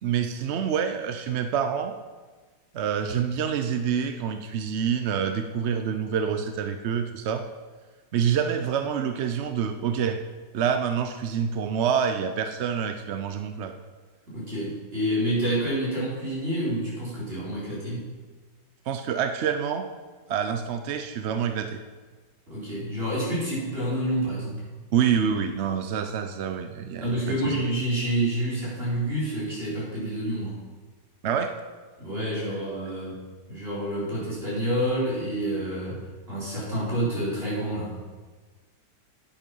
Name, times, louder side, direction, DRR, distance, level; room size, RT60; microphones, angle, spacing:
voice 1, 0.0-1.9 2.7-7.4 8.1-10.2 10.5-13.7 18.9-19.9 20.3-21.8 24.9-27.6 31.2-31.5, right 7 dB, 65° right, 7 dB, 0.7 m, -27 dB
voice 2, 14.3-18.1 22.5-24.6 27.0-30.6 32.0-33.2 33.5-38.0, right 1 dB, 35° right, -7 dB, 4.6 m, -28 dB
10.0 x 9.5 x 5.4 m, 1.4 s
omnidirectional pair, 1.8 m